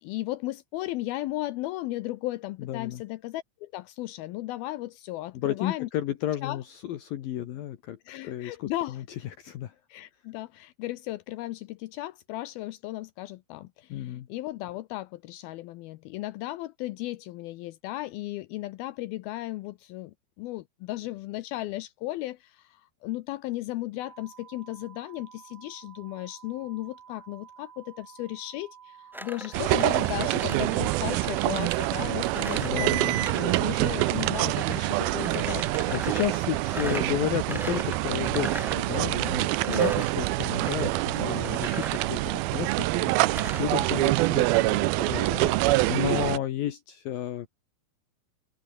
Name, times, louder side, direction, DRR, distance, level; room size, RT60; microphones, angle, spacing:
voice 1, 0.0-5.9 6.4-6.6 8.1-9.0 9.9-36.0 39.7-39.9 45.3-45.6, left 17 dB, 85° left, 2.3 m, -35 dB
voice 2, 2.6-3.0 5.3-9.0 9.4-9.7 13.9-14.3 32.6-33.2 35.9-47.5, left 12 dB, 65° left, 2.9 m, -32 dB
sound 1, 24.0-33.6, right 8 dB, 50° right, 3.0 m, -51 dB
sound 2, 29.1-43.7, equal, ahead, 2.5 m, -40 dB
sound 3, 29.5-46.4, right 19 dB, 80° right, 2.3 m, -26 dB
omnidirectional pair, 4.8 m